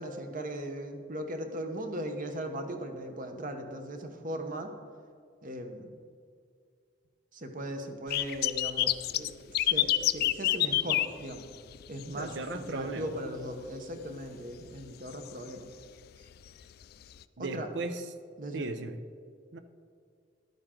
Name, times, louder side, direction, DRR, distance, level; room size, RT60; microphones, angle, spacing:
voice 1, 0.0-4.7 5.4-5.9 7.3-11.5 11.9-15.7 17.4-17.7 18.4-18.7, right 1 dB, 45° right, 6 dB, 1.0 m, -38 dB
sound 1, 8.1-12.3 12.6-12.9 13.4-13.5 14.7-14.8 15.2-15.3 16.5-16.6 17.2-17.3, left 14 dB, 55° left, 0.3 m, -27 dB
voice 2, 12.1-13.1 17.4-18.0 18.5-19.0 19.5-19.6, right 3 dB, 65° right, 10 dB, 0.7 m, -36 dB
11.5 x 9.3 x 3.8 m, 2.2 s
head